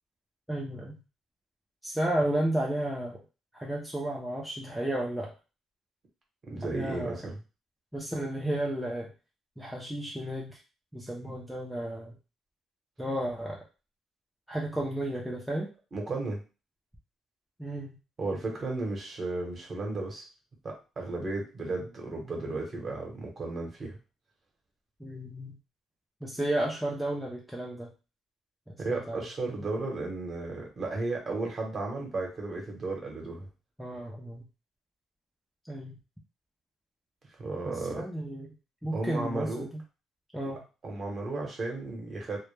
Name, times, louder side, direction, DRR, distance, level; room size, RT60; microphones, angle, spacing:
voice 1, 0.5-1.0 1.8-3.2 3.5-5.3 6.6-7.2 7.9-9.1 9.6-10.6 10.9-12.1 13.0-13.6 14.5-15.7 17.6-18.0 25.0-25.6 26.2-27.9 28.7-29.3 33.8-34.4 35.7-36.0 37.9-38.5 38.8-39.8 40.3-40.6, right 1 dB, ahead, -3 dB, 0.4 m, -33 dB
voice 2, 6.5-7.4 15.9-16.4 18.2-20.2 20.6-24.0 28.8-33.5 37.4-38.0 38.9-39.7 40.8-42.4, right 2 dB, 35° right, 0 dB, 0.9 m, -34 dB
2.1 x 2.1 x 3.1 m, 0.32 s
cardioid pair, 145°, 0 cm